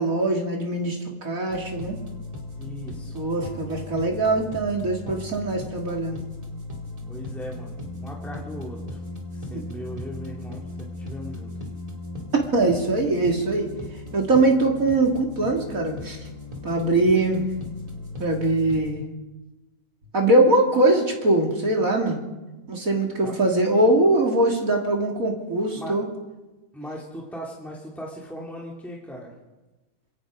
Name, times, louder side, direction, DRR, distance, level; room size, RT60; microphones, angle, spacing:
voice 1, 0.0-2.0 3.1-6.2 9.5-9.6 12.5-13.7 14.1-16.2 16.6-17.4 18.2-19.0 20.1-22.2 22.7-26.1, right 2 dB, 65° right, 1 dB, 3.5 m, -22 dB
sound 1, 1.5-18.9, left 2 dB, 25° right, 2.8 m, -37 dB
voice 2, 2.6-3.1 7.1-9.0 9.3-11.7 23.2-23.3 25.8-26.0 26.7-29.3, equal, ahead, -3 dB, 2.8 m, -38 dB
26.5 x 22.0 x 5.1 m, 1.1 s
omnidirectional pair, 1.6 m